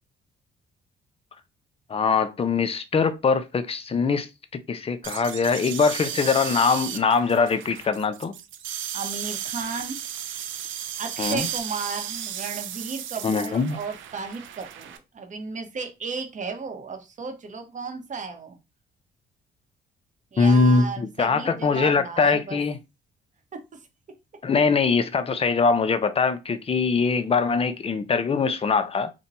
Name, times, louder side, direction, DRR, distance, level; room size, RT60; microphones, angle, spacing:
voice 1, 1.9-4.3 4.7-8.4 11.2-11.5 13.2-13.8 20.4-22.8 24.4-29.1, left 4 dB, 30° left, 0.5 m, -22 dB
sound 1, 5.0-15.0, right 10 dB, 75° right, 0.5 m, -34 dB
voice 2, 8.9-10.0 11.0-18.6 20.3-22.6 23.5-23.8, right 4 dB, 40° right, 0.8 m, -34 dB
2.6 x 2.2 x 4.1 m
cardioid pair, 90°, 20 cm